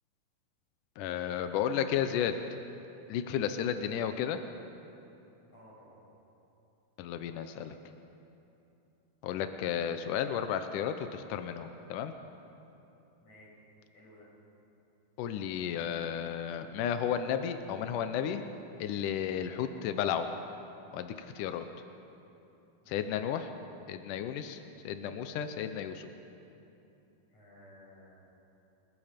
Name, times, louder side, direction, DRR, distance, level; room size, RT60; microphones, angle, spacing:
voice 1, 1.0-2.4 3.1-4.4 7.0-7.8 9.2-12.1 15.2-18.4 18.8-20.3 20.9-21.7 22.9-23.5 23.9-24.6 24.8-26.1, left 9 dB, 80° left, 8 dB, 1.9 m, -33 dB
voice 2, 5.5-6.0 13.2-13.5 13.9-14.3 22.8-23.1 27.3-28.2, left 1 dB, 40° left, -5 dB, 8.1 m, -56 dB
28.5 x 21.0 x 5.2 m, 2.9 s
omnidirectional pair, 4.7 m